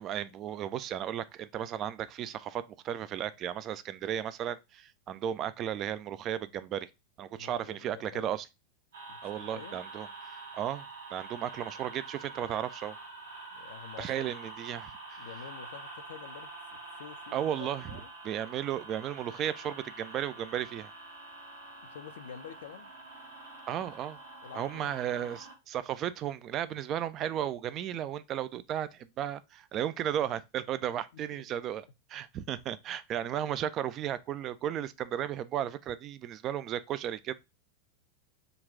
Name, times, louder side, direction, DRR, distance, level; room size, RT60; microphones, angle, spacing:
voice 1, 0.0-6.9 7.2-8.4 9.2-13.0 14.0-15.2 17.3-17.9 18.2-20.9 23.7-24.2 24.5-31.8 32.1-37.3, right 10 dB, 35° right, 0.3 m, -34 dB
voice 2, 7.4-8.3 9.1-9.8 13.5-14.5 15.2-18.1 21.8-22.9 24.4-24.9 26.7-26.8 31.1-31.4, left 8 dB, 60° left, 0.4 m, -48 dB
sound 1, 8.9-25.6, right 3 dB, 65° right, 1.1 m, -46 dB
3.9 x 2.3 x 3.8 m
figure-of-eight pair, 90°, 0 cm